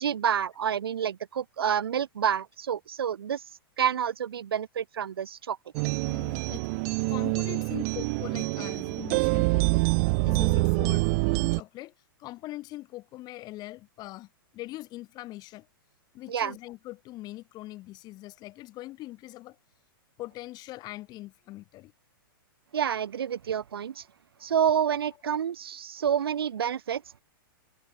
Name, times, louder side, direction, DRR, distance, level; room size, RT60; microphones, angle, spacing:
voice 1, 0.0-3.4 3.8-5.6 16.3-16.6 22.7-24.0 24.4-27.2, right 8 dB, 85° right, 0.8 m, -28 dB
sound 1, 5.7-11.6, right 31 dB, 45° right, 0.8 m, -26 dB
voice 2, 6.0-6.7 7.1-9.9 10.2-11.9 12.2-14.3 14.5-15.7 16.1-19.6 20.2-21.9, left 17 dB, 35° left, 3.7 m, -42 dB
open air
hypercardioid pair, 130°, 12 cm